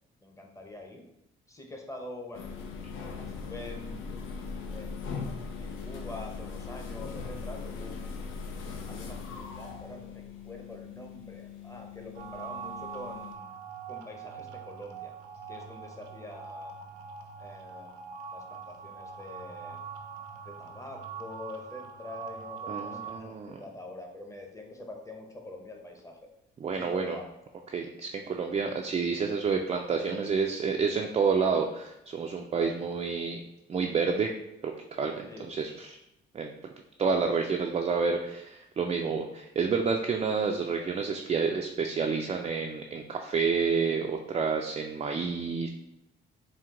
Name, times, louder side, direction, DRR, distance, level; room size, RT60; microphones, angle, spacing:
voice 1, 0.2-1.0 1.5-2.5 3.1-4.2 4.7-5.3 5.6-8.2 8.9-13.5 13.9-15.1 15.5-17.0 17.4-19.8 20.4-26.3 26.7-27.3 32.5-32.7 35.3-35.5 45.4-45.6, left 2 dB, 15° left, 2 dB, 0.8 m, -45 dB
sound 1, 2.3-13.4, left 5 dB, 80° left, 0.6 m, -40 dB
sound 2, 12.2-23.2, right 6 dB, 85° right, 0.6 m, -43 dB
voice 2, 22.7-23.6 26.6-27.2 27.7-33.4 33.7-34.3 34.6-35.9 36.3-36.5 37.0-45.7, right 5 dB, 30° right, 2 dB, 0.4 m, -29 dB
4.4 x 2.2 x 3.7 m, 0.85 s
cardioid pair, 90°, 20 cm